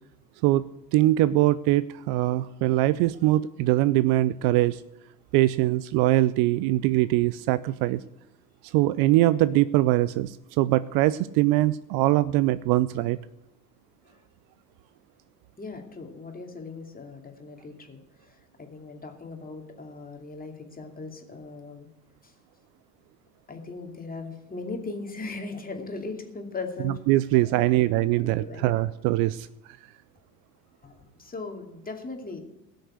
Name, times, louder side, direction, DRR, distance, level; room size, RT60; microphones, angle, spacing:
voice 1, 0.9-4.8 5.3-8.0 8.7-13.2 26.8-29.5, right 16 dB, 50° right, 16 dB, 0.6 m, -22 dB
voice 2, 15.6-18.0 18.3-21.9 23.5-27.0 27.5-27.6 28.2-28.7 30.8-30.9 31.2-32.4, left 3 dB, 20° left, 3 dB, 2.6 m, -38 dB
17.0 x 6.5 x 8.3 m, 0.91 s
hypercardioid pair, 80°, 48 cm